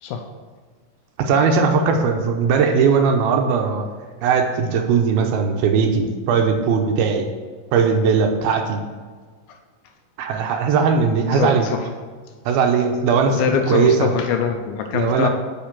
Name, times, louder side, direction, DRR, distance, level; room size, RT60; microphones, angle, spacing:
voice 1, 1.2-3.9 4.2-7.3 7.7-8.8 10.2-11.7 12.5-14.1 14.9-15.3, right 5 dB, 75° right, 4 dB, 2.5 m, -19 dB
voice 2, 11.3-11.9 13.3-15.3, left 7 dB, 75° left, 5 dB, 2.2 m, -23 dB
8.5 x 5.8 x 7.3 m, 1.5 s
omnidirectional pair, 4.6 m